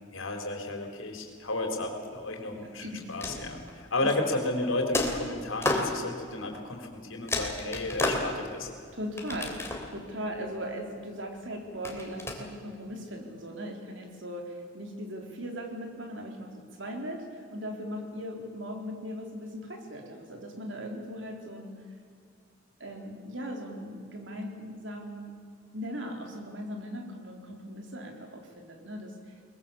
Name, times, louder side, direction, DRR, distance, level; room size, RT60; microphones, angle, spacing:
voice 1, 0.1-8.7, left 2 dB, 90° left, 3 dB, 4.0 m, -33 dB
voice 2, 2.6-3.1 4.0-4.1 8.9-21.8 22.8-25.4 25.7-29.1, equal, 65° right, 2 dB, 4.0 m, -39 dB
sound 1, 3.0-3.8 4.9-5.9 6.8-6.9 7.3-8.6 9.2-10.0 11.8-12.3, left 2 dB, 15° left, 3.1 m, -31 dB
23.0 x 21.5 x 7.2 m, 2.3 s
head